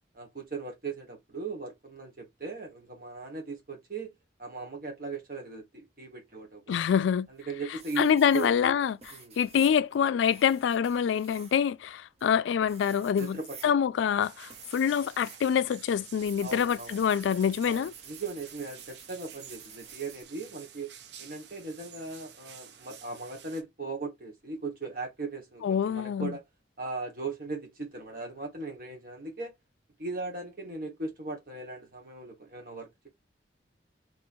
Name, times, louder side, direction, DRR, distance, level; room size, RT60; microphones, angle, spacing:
voice 1, 0.1-4.1 4.4-6.8 7.3-8.5 9.1-9.4 13.1-13.8 16.4-20.9 21.2-26.4 26.8-29.5 30.0-33.1, right 3 dB, 50° right, 1.5 m, -38 dB
voice 2, 6.7-7.3 8.0-13.4 13.6-17.9 25.6-26.3, left 8 dB, 85° left, 0.3 m, -26 dB
sound 1, 7.0-7.4 7.8-15.5 15.7-20.2, right 6 dB, 35° right, 0.7 m, -51 dB
sound 2, 14.2-23.6, right 8 dB, 70° right, 0.6 m, -50 dB
4.3 x 3.0 x 2.6 m
head